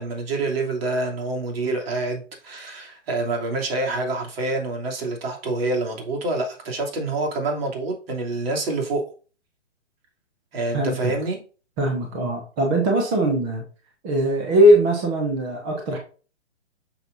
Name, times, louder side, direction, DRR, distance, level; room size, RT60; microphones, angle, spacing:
voice 1, 0.0-9.0 10.5-11.4 12.2-12.3, right 2 dB, 55° right, 1 dB, 3.0 m, -27 dB
voice 2, 10.7-11.1 11.8-13.6 14.0-16.0, equal, 10° right, 1 dB, 0.4 m, -20 dB
8.7 x 6.1 x 2.6 m, 0.37 s
hypercardioid pair, 140°, 36 cm